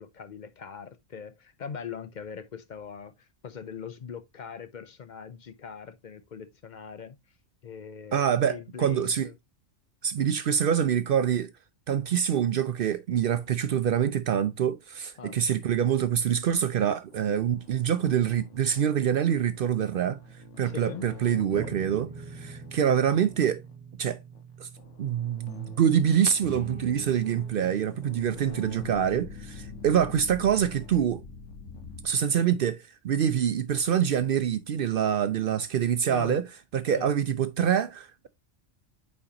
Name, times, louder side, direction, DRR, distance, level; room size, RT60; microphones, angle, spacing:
voice 1, 0.0-7.2 7.6-9.3 15.2-15.4 20.6-21.1 21.4-21.8 36.1-36.4 37.0-37.1, left 6 dB, 50° left, 0.7 m, -41 dB
voice 2, 8.1-9.3 10.0-11.5 11.9-20.2 20.6-23.6 24.0-24.2 24.6-24.7 25.0-31.2 32.0-36.4 36.7-38.3, right 9 dB, 60° right, 0.6 m, -25 dB
sound 1, 17.1-23.7 24.3-24.4 24.8-32.1, left 6 dB, 90° left, 1.4 m, -47 dB
sound 2, 19.9-32.4, right 4 dB, 15° right, 0.3 m, -46 dB
8.7 x 4.3 x 2.8 m
omnidirectional pair, 1.2 m